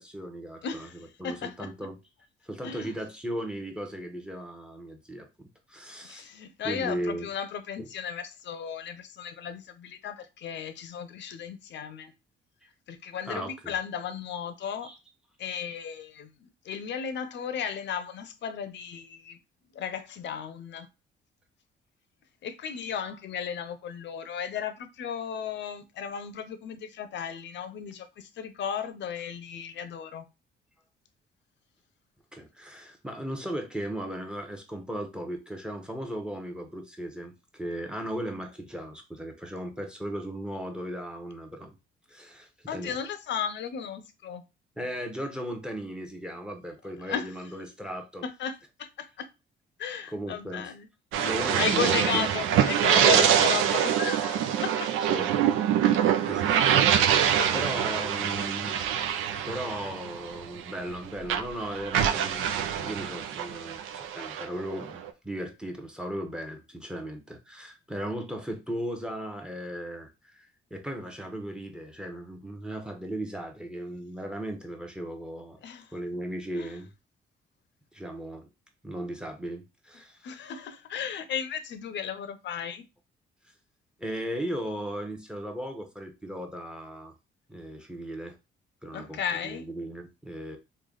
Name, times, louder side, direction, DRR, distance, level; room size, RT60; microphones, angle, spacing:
voice 1, 0.0-0.9 1.2-1.9 2.4-6.3 6.6-7.3 7.8-7.9 13.3-13.7 14.8-15.0 32.3-41.7 42.1-43.0 44.8-48.2 50.1-50.7 51.2-52.3 53.0-53.5 55.1-55.3 56.2-58.8 59.4-62.5 62.7-75.6 75.9-76.9 77.9-78.5 78.8-80.2 84.0-87.1 87.5-88.4 88.8-90.6, right 1 dB, 5° right, 0.9 m, -37 dB
voice 2, 0.6-1.7 2.6-2.9 6.0-12.1 12.9-14.9 15.4-19.4 19.7-20.9 22.4-30.2 42.7-44.4 47.0-47.3 48.2-49.3 49.8-50.9 51.2-54.9 57.2-57.7 75.6-75.9 76.5-76.8 80.2-82.8 88.9-89.7, left 7 dB, 65° left, 0.6 m, -35 dB
sound 1, 51.1-61.0 61.2-65.1, right 9 dB, 90° right, 0.5 m, -25 dB
3.2 x 2.3 x 3.8 m
cardioid pair, 90°, 20 cm